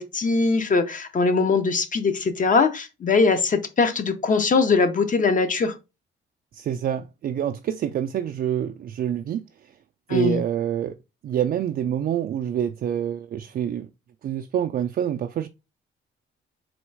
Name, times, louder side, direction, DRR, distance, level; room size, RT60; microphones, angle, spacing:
voice 1, 0.0-5.7 10.1-10.4, left 4 dB, 40° left, 0.9 m, -21 dB
voice 2, 6.5-9.7 10.1-11.0 11.2-13.9 14.2-15.5, right 9 dB, 50° right, 0.4 m, -26 dB
3.9 x 2.4 x 4.6 m
cardioid pair, 90°, 20 cm